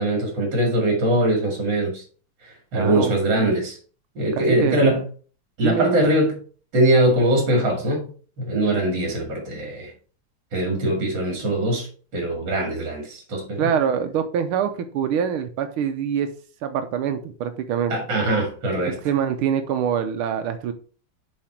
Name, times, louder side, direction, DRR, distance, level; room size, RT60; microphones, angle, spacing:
voice 1, 0.0-2.0 2.4-3.8 4.2-5.0 5.6-6.3 6.7-8.0 8.4-9.9 10.5-11.9 12.1-13.6 17.9-19.0, right 1 dB, 55° right, 2.9 m, -22 dB
voice 2, 2.7-3.6 4.4-4.9 5.6-6.0 13.6-16.3 16.6-17.9 18.9-20.7, right 8 dB, 80° right, 1.6 m, -25 dB
7.6 x 4.8 x 4.5 m
omnidirectional pair, 2.4 m